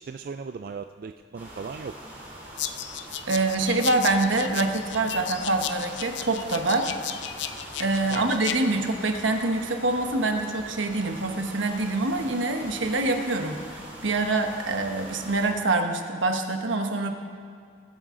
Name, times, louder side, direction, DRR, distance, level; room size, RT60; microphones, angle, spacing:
voice 1, 0.0-2.0 8.1-8.3, right 5 dB, 50° right, 8 dB, 0.3 m, -37 dB
sound 1, 1.3-15.5, right 1 dB, 10° right, 3.4 m, -43 dB
sound 2, 2.6-8.6, left 10 dB, 70° left, 0.6 m, -35 dB
voice 2, 3.3-6.9 7.8-17.1, right 2 dB, 80° right, 5 dB, 1.2 m, -25 dB
21.5 x 8.8 x 3.8 m, 2.3 s
head